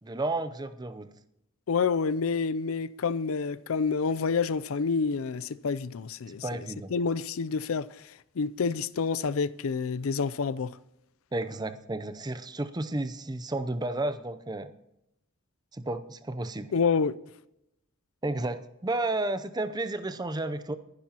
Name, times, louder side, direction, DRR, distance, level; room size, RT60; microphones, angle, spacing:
voice 1, 0.0-1.1 6.3-6.9 11.3-14.7 15.7-16.7 18.2-20.8, right 2 dB, 20° right, 0.6 m, -32 dB
voice 2, 1.7-6.4 6.9-7.9 8.4-10.7 16.7-17.2, left 5 dB, 75° left, 0.5 m, -28 dB
21.5 x 10.5 x 2.9 m
head